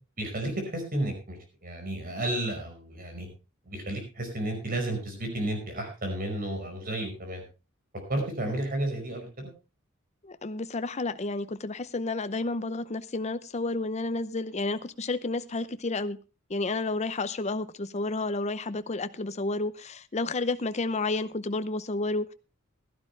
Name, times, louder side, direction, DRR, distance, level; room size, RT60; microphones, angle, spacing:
voice 1, 0.2-3.3 3.7-7.4 8.1-9.5, right 1 dB, 45° right, 4 dB, 5.1 m, -32 dB
voice 2, 10.2-16.2 16.5-22.3, left 3 dB, 35° left, 12 dB, 0.7 m, -31 dB
15.5 x 12.5 x 3.3 m, 0.30 s
head